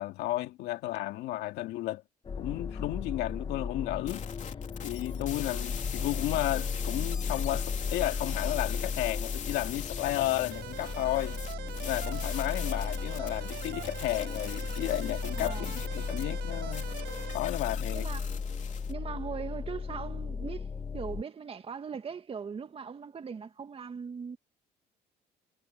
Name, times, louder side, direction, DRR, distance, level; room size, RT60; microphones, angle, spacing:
voice 1, 0.0-2.0 2.4-4.3 4.8-11.4 11.8-16.9 17.3-18.1, left 16 dB, 85° left, 2.2 m, -33 dB
sound 1, 2.2-21.2, left 5 dB, 30° left, 1.2 m, -35 dB
sound 2, 4.1-18.9, left 8 dB, 45° left, 3.2 m, -43 dB
sound 3, 10.5-17.4, right 15 dB, 80° right, 5.6 m, -43 dB
voice 2, 15.4-15.7 17.9-18.3 18.9-20.7 20.9-24.4, right 6 dB, 35° right, 2.1 m, -39 dB
cardioid pair, 110°, 17 cm